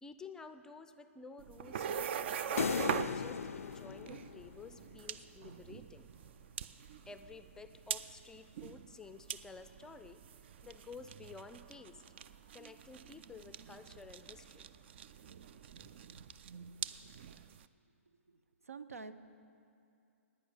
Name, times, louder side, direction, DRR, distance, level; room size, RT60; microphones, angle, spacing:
voice 1, 0.0-6.1 7.1-10.2 10.6-12.0 12.5-14.7 15.8-16.0, left 4 dB, 10° left, 10 dB, 0.5 m, -52 dB
sound 1, 1.4-17.6, right 8 dB, 50° right, 0.5 m, -43 dB
sound 2, 2.6-5.0, left 7 dB, 75° left, 0.3 m, -37 dB
voice 2, 18.1-19.1, right 4 dB, 85° right, 12 dB, 0.7 m, -49 dB
11.5 x 9.5 x 8.7 m, 2.5 s
hypercardioid pair, 130°, 8 cm